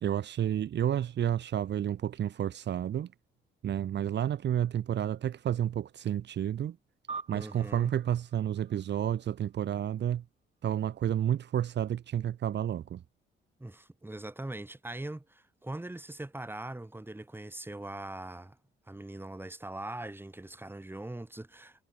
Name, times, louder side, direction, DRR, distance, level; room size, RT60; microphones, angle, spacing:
voice 1, 0.0-3.1 3.6-6.8 7.3-10.2 10.6-13.0, right 10 dB, 60° right, 1.6 m, -30 dB
sound 1, 7.1-9.8, right 4 dB, 30° right, 3.8 m, -45 dB
voice 2, 7.3-7.9 13.6-18.6 18.9-21.8, right 1 dB, 10° right, 4.7 m, -41 dB
cardioid pair, 90°, 20 cm